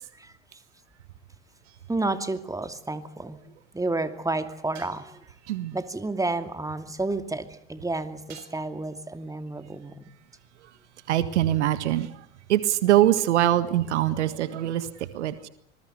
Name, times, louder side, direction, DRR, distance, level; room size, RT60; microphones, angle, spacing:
sound 1, 1.6-2.3 4.7-5.5 8.3-9.0, right 9 dB, 50° right, 6.3 m, -52 dB
voice 1, 1.9-3.4 3.7-5.2 5.7-10.1, right 2 dB, 10° right, 9 dB, 2.6 m, -31 dB
voice 2, 11.1-12.2 12.5-15.5, right 13 dB, 80° right, 13 dB, 1.7 m, -23 dB
26.0 x 21.0 x 8.1 m, 0.71 s
hypercardioid pair, 75°, 34 cm